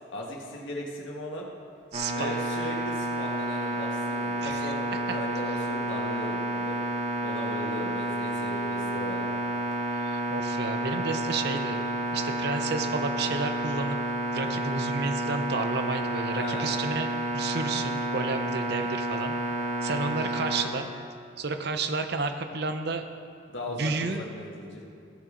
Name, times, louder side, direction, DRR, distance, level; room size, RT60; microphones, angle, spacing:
voice 1, 0.1-1.4 2.0-6.8 7.2-9.4 14.4-14.6 16.3-16.7 23.5-24.8, left 1 dB, 70° left, -1 dB, 1.7 m, -38 dB
sound 1, 1.9-20.6, right 1 dB, 35° right, 1.2 m, -30 dB
voice 2, 1.9-2.4 4.4-4.7 9.9-11.8 12.1-14.0 14.3-19.4 19.8-20.9 21.4-23.1 23.7-24.2, right 3 dB, 55° right, 7 dB, 0.7 m, -31 dB
16.0 x 6.5 x 3.9 m, 2.4 s
head